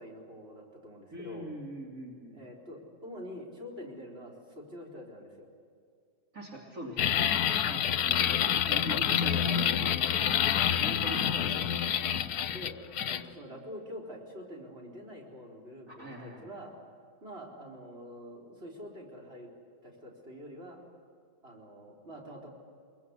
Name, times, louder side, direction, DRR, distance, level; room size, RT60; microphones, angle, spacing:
voice 1, 0.0-1.5 2.3-5.5 10.3-10.5 12.5-12.8 13.0-16.7 17.2-19.5 19.8-20.8 21.4-22.5, equal, 35° right, -2 dB, 4.4 m, -46 dB
voice 2, 1.1-2.4 6.3-7.3 7.7-8.4 8.7-10.1 10.7-11.7 15.9-16.5, right 1 dB, 55° right, -3 dB, 3.5 m, -42 dB
sound 1, 7.0-13.2, left 9 dB, 75° left, 1.3 m, -27 dB
24.0 x 22.5 x 8.3 m, 2.3 s
omnidirectional pair, 1.7 m